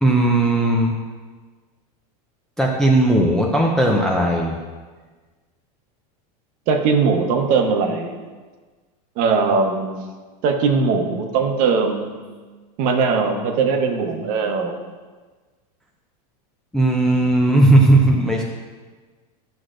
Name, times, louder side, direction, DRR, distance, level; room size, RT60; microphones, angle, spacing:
voice 1, 0.0-0.9 2.6-4.6 16.7-18.4, right 1 dB, 5° left, -2 dB, 0.4 m, -16 dB
voice 2, 6.7-8.2 9.2-10.0 10.4-12.1 12.8-14.8, right 5 dB, 45° right, 4 dB, 0.9 m, -20 dB
12.0 x 6.2 x 2.5 m, 1.4 s
supercardioid pair, 160°, 20 cm